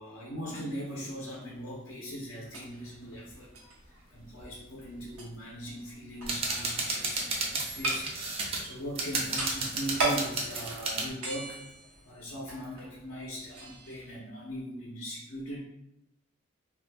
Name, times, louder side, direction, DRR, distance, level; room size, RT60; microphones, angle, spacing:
voice 1, 0.0-3.5 3.9-11.6 12.1-15.6, equal, 70° left, -4 dB, 0.6 m, -40 dB
sound 1, 2.4-14.1, right 2 dB, 90° right, 0.8 m, -39 dB
sound 2, 6.2-8.6 8.9-11.1, right 2 dB, 30° right, 0.4 m, -33 dB
2.7 x 2.4 x 3.3 m, 0.86 s
head